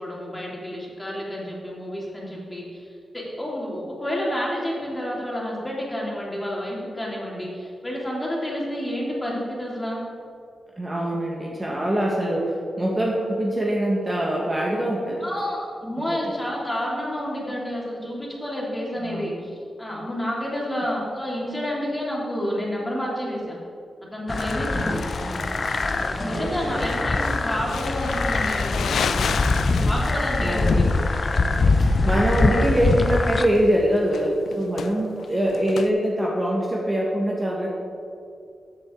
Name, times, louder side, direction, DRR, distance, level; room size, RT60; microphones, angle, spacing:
voice 1, 0.0-10.0 15.2-23.6 24.1-25.0 25.8-29.2 29.7-31.0 31.7-32.2, equal, 15° left, -4 dB, 2.8 m, -30 dB
voice 2, 10.8-15.3 16.1-16.3 19.0-19.3 24.7-25.4 26.2-26.9 30.4-31.0 31.8-37.7, right 1 dB, 25° right, -3 dB, 1.5 m, -24 dB
sound 1, 24.3-33.5, left 3 dB, 40° left, 0.6 m, -23 dB
Crumpling crinkling, 24.4-35.9, left 7 dB, 85° left, 0.4 m, -34 dB
13.5 x 7.7 x 3.8 m, 2.4 s
wide cardioid pair, 95°, 0 cm